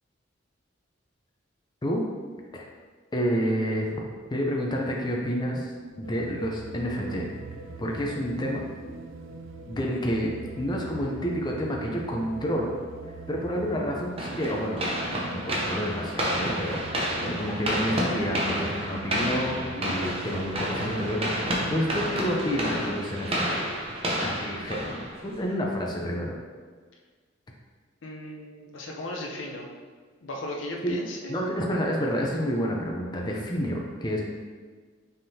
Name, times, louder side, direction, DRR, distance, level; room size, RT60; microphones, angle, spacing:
voice 1, 3.1-3.9 4.3-5.7 6.0-7.2 7.8-8.6 9.7-12.7 13.3-14.8 15.3-23.6 24.2-26.4 30.8-31.0 31.3-34.2, equal, 25° left, -1 dB, 0.5 m, -29 dB
sound 1, 6.0-22.2, right 4 dB, 85° right, 0.4 m, -42 dB
sound 2, 14.2-25.5, equal, 30° right, 0.7 m, -30 dB
voice 2, 28.0-29.7 30.2-31.3, left 1 dB, 90° left, 0 dB, 0.6 m, -36 dB
5.4 x 3.6 x 2.7 m, 1.5 s
head